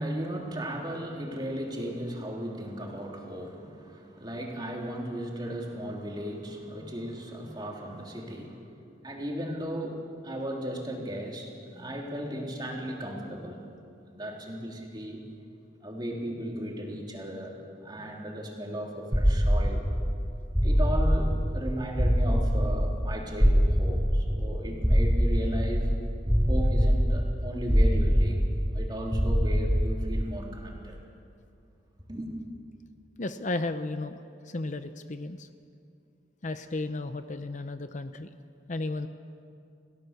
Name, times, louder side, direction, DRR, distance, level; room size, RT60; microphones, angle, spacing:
voice 1, 0.0-13.7 14.1-15.2 15.8-19.9 20.6-25.9 26.5-28.5 28.7-31.0 32.1-32.3, equal, 25° right, -1 dB, 3.2 m, -36 dB
sound 1, 19.1-30.5, equal, ahead, 0.6 m, -24 dB
voice 2, 33.2-34.2 34.5-35.5 36.4-38.3 38.7-39.1, left 2 dB, 40° left, 9 dB, 0.7 m, -33 dB
29.5 x 17.0 x 6.7 m, 2.4 s
head